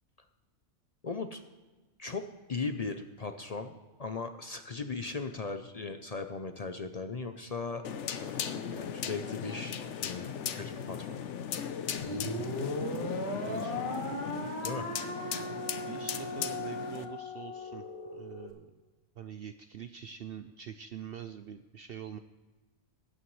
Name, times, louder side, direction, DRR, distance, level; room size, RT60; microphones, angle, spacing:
voice 1, 1.0-1.4 2.0-2.2 2.5-7.8 8.2-11.3 12.0-12.2 14.6-14.9, left 4 dB, 45° left, 7 dB, 0.5 m, -38 dB
sound 1, 7.8-17.0, left 8 dB, 70° left, 1.0 m, -38 dB
sound 2, 12.0-18.5, left 1 dB, 25° left, 1.9 m, -37 dB
voice 2, 13.4-14.0 15.2-15.6 15.8-17.9 18.1-18.7 19.2-22.2, right 8 dB, 60° right, 9 dB, 0.6 m, -45 dB
19.5 x 8.8 x 3.2 m, 1.2 s
omnidirectional pair, 1.3 m